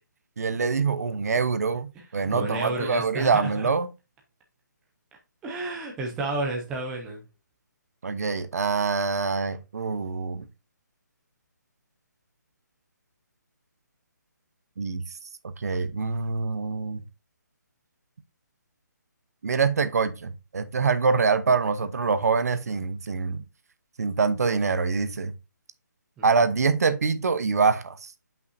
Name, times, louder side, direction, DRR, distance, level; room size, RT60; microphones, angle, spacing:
voice 1, 0.4-3.9 8.0-10.5 14.8-15.1 15.6-17.0 19.4-23.4 24.0-25.3 26.2-28.1, right 5 dB, 55° right, 0.8 m, -25 dB
voice 2, 2.1-3.7 5.4-7.2 26.2-26.3, right 2 dB, 5° right, 0.4 m, -31 dB
8.1 x 5.6 x 2.6 m
hypercardioid pair, 175°, 10 cm